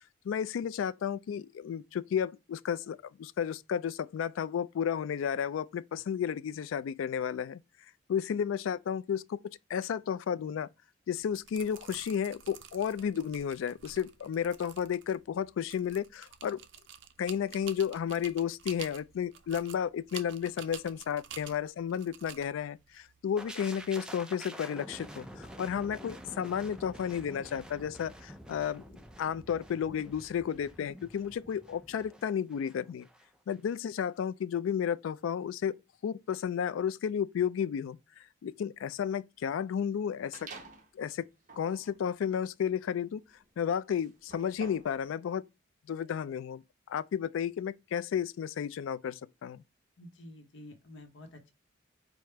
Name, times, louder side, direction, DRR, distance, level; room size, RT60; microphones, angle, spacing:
voice 1, 0.2-7.6 8.1-9.4 9.7-10.7 11.1-16.6 17.2-33.1 33.5-35.7 36.0-38.0 38.4-40.5 40.9-41.2 41.6-43.2 43.6-45.4 45.9-46.6 46.9-49.6, left 8 dB, 90° left, 0.3 m, -32 dB
sound 1, 11.2-23.9, right 9 dB, 70° right, 0.5 m, -50 dB
sound 2, 23.4-33.2 33.5-33.7, right 1 dB, 5° right, 0.3 m, -48 dB
sound 3, 40.3-40.9 41.4-45.0, right 3 dB, 40° right, 0.9 m, -50 dB
voice 2, 50.0-51.5, left 1 dB, 65° left, 0.8 m, -50 dB
4.9 x 2.0 x 4.4 m
head